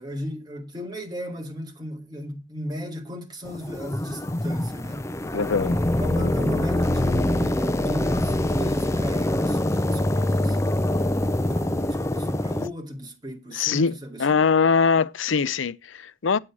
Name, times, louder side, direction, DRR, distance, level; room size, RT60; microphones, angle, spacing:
voice 1, 0.0-5.1 6.0-10.7 11.4-14.4, equal, 20° right, 2.3 m, -35 dB
sound 1, 3.5-12.7, left 1 dB, 15° left, 0.5 m, -24 dB
voice 2, 5.3-5.8 11.7-11.9 13.5-16.4, left 5 dB, 75° left, 0.6 m, -22 dB
8.7 x 8.6 x 4.7 m
head